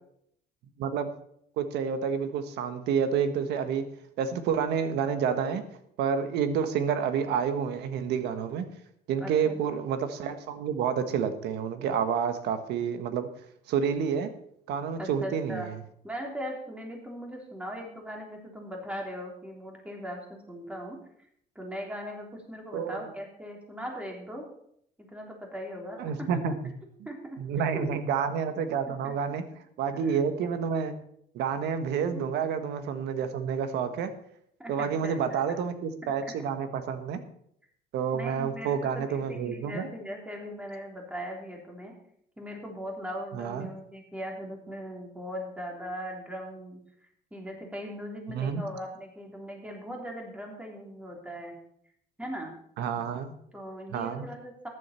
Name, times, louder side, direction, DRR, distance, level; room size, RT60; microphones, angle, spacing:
voice 1, 0.8-1.1 1.6-3.8 4.2-5.6 6.0-8.7 9.1-13.3 13.7-14.3 14.7-15.7 22.7-23.0 26.0-26.5 27.4-29.4 29.8-30.9 31.3-34.1 34.7-37.2 37.9-39.9 43.3-43.7 48.3-48.6 52.8-53.3 53.9-54.3, right 7 dB, 80° right, 9 dB, 1.5 m, -29 dB
voice 2, 9.2-9.6 15.0-15.7 16.0-21.0 21.6-24.5 25.1-26.4 27.1-27.4 27.8-27.9 29.2-29.3 30.0-30.2 32.1-32.3 34.6-35.4 36.0-36.3 38.1-41.9 42.4-46.8 47.3-51.5 52.2-52.5 52.9-53.0 53.5-54.7, equal, 5° right, 0 dB, 3.4 m, -39 dB
14.5 x 10.5 x 4.4 m, 0.69 s
cardioid pair, 110°, 17 cm